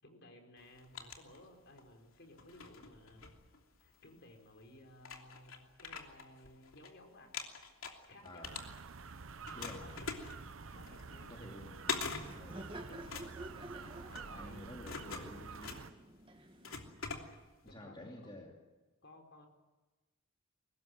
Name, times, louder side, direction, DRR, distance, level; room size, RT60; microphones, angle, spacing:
voice 1, 0.0-3.2 3.8-7.4 7.8-8.7 9.5-10.4 10.7-11.4 12.5-13.2 14.1-15.0 17.7-18.5 19.0-19.5, left 1 dB, 55° left, 4 dB, 4.6 m, -58 dB
sound 1, 0.6-1.9 2.3-4.0 4.6-4.7 5.0-6.9 7.2-9.1 9.4-17.7, left 5 dB, 70° left, 3.0 m, -44 dB
voice 2, 8.2-8.6 9.5-9.9 11.3-11.7 12.4-12.6 14.3-15.8 17.6-18.5, left 1 dB, 20° left, 0 dB, 2.9 m, -50 dB
sound 2, 8.4-15.9, right 4 dB, 65° right, 0.9 m, -49 dB
Laughter, 10.7-17.0, right 1 dB, 25° right, 1.5 m, -52 dB
23.0 x 19.5 x 9.2 m, 1.2 s
head